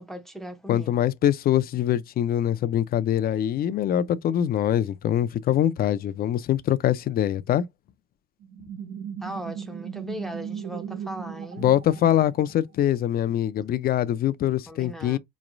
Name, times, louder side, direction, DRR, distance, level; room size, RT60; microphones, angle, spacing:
voice 1, 0.0-1.1 9.2-11.7 14.7-15.2, equal, ahead, 0.6 m, -38 dB
voice 2, 0.7-7.6 11.6-15.2, left 11 dB, 45° left, 0.5 m, -23 dB
sound 1, 8.4-12.9, right 8 dB, 55° right, 0.7 m, -37 dB
4.2 x 3.1 x 2.5 m
cardioid pair, 100°, 21 cm